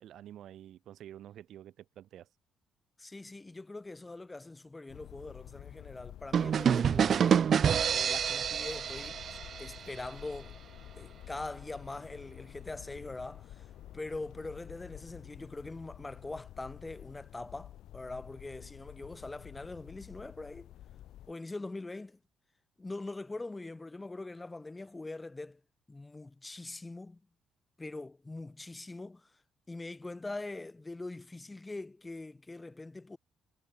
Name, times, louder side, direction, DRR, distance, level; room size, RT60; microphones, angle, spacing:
voice 1, 0.0-2.3, right 11 dB, 75° right, 1.2 m, -49 dB
voice 2, 3.0-7.5 7.9-10.6 11.0-20.7 21.3-22.2 22.8-25.6 25.9-27.2 27.8-29.4 29.7-33.2, left 2 dB, 20° left, 0.8 m, -43 dB
sound 1, 4.9-21.3, left 12 dB, 80° left, 1.0 m, -50 dB
sound 2, 6.3-10.1, right 8 dB, 55° right, 0.3 m, -27 dB
cardioid pair, 90°, 0 cm